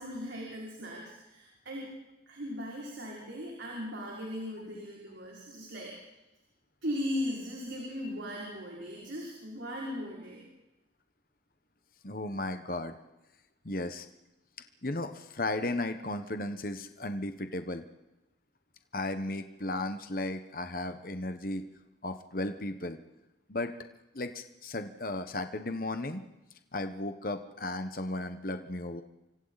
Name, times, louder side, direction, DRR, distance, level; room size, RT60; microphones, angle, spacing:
voice 1, 0.0-1.9 2.3-6.0 6.8-10.4, equal, 80° right, -3 dB, 5.5 m, -38 dB
voice 2, 12.0-13.0 13.6-14.1 14.8-17.8 18.9-21.6 22.0-23.0 23.5-23.7 24.1-26.2 26.7-29.0, left 2 dB, 50° left, 8 dB, 1.2 m, -35 dB
29.5 x 25.0 x 4.2 m, 0.97 s
head